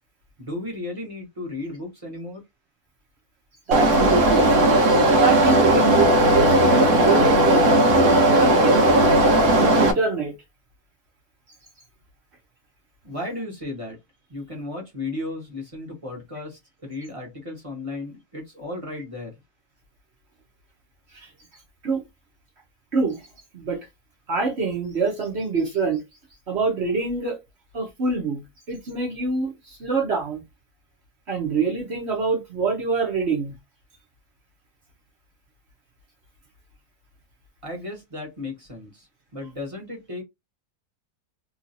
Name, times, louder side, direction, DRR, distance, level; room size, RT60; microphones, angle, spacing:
voice 1, 0.4-2.4 13.0-14.0 14.3-19.3 37.6-40.2, left 2 dB, 25° right, 1.1 m, -34 dB
voice 2, 3.7-4.7 5.1-7.8 8.3-8.8 9.6-10.3 21.1-21.3 21.8-22.0 22.9-23.2 23.5-23.8 24.3-26.0 26.5-27.4 27.7-28.4 28.7-30.4 31.3-33.5, right 4 dB, 50° right, 1.1 m, -25 dB
sound 1, 3.7-9.9, right 1 dB, 90° right, 1.3 m, -17 dB
3.0 x 2.8 x 2.6 m
omnidirectional pair, 1.6 m